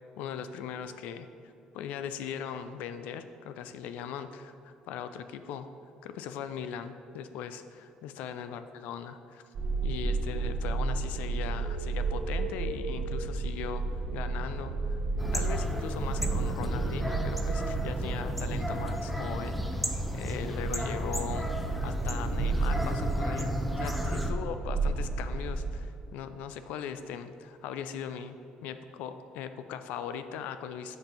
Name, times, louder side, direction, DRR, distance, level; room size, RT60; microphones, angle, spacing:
voice 1, 0.2-1.3 1.7-5.7 6.0-9.4 9.8-13.8 14.1-15.0 15.3-21.5 21.8-31.0, left 8 dB, 80° left, 10 dB, 0.3 m, -39 dB
sound 1, 9.5-25.7, right 3 dB, 65° right, 0.9 m, -33 dB
sound 2, 15.2-24.3, equal, ahead, 0.6 m, -33 dB
7.8 x 2.6 x 5.5 m, 2.5 s
supercardioid pair, 80°, 3 cm